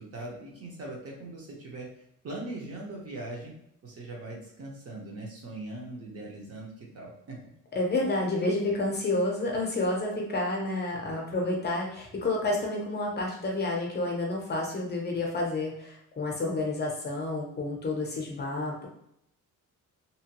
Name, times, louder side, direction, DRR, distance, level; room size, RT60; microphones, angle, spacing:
voice 1, 0.0-1.9 2.2-3.5 3.8-7.4, right 2 dB, 50° right, -3 dB, 0.9 m, -40 dB
voice 2, 7.7-18.9, left 2 dB, 30° left, -1 dB, 0.6 m, -30 dB
2.8 x 2.2 x 2.9 m, 0.74 s
cardioid pair, 145°, 32 cm